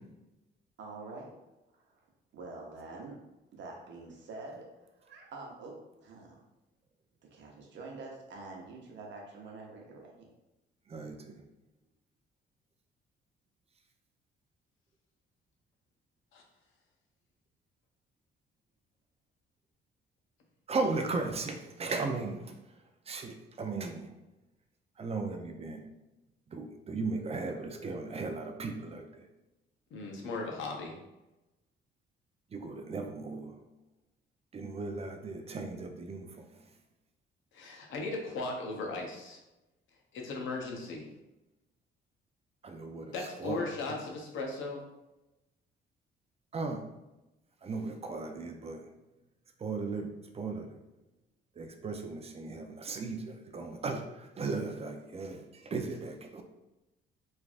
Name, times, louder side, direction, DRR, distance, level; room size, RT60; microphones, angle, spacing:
voice 1, 0.8-1.3 1.7-2.0 2.3-3.2 3.5-4.7 4.9-6.4 7.3-10.3, right 3 dB, 65° right, 0 dB, 0.8 m, -46 dB
voice 2, 10.9-11.4 20.7-24.1 25.0-25.9 26.5-29.3 32.5-33.6 34.5-36.7 42.6-43.6 43.9-44.0 46.5-46.8 47.6-48.9 49.6-50.8 51.5-56.4, right 3 dB, 30° right, 5 dB, 0.4 m, -37 dB
voice 3, 29.9-31.0 37.5-39.4 40.1-41.1 43.1-44.8, left 3 dB, 75° left, 1 dB, 0.7 m, -37 dB
3.1 x 2.4 x 2.4 m, 0.98 s
cardioid pair, 90°, 20 cm